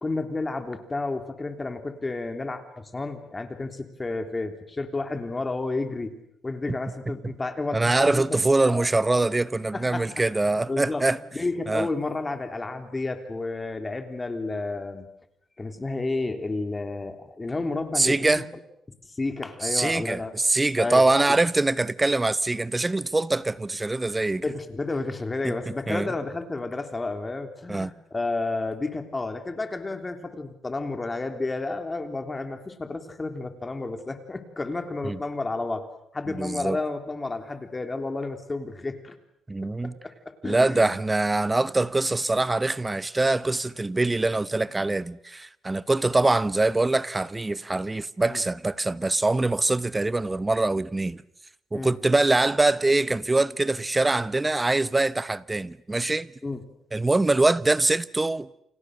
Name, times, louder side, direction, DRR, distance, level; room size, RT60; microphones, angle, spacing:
voice 1, 0.0-6.2 6.4-8.9 9.7-10.1 10.7-11.0 11.3-15.1 15.6-18.4 19.1-20.3 20.8-21.4 21.7-21.8 24.4-35.9 36.1-39.2 39.6-40.9 48.3-48.4 51.7-52.0 56.4-56.6, left 3 dB, 20° left, 3.4 m, -31 dB
voice 2, 7.7-11.2 11.7-11.9 18.0-18.4 19.6-24.4 25.4-25.5 25.9-26.1 27.7-27.9 35.0-35.2 36.3-36.8 39.5-39.9 40.4-51.2 51.7-56.3 56.9-58.5, right 2 dB, 20° right, 1.0 m, -23 dB
Marimba xylophone, 8.8-14.3, left 6 dB, 65° left, 4.3 m, -56 dB
29.5 x 28.0 x 6.6 m
cardioid pair, 90°, 0 cm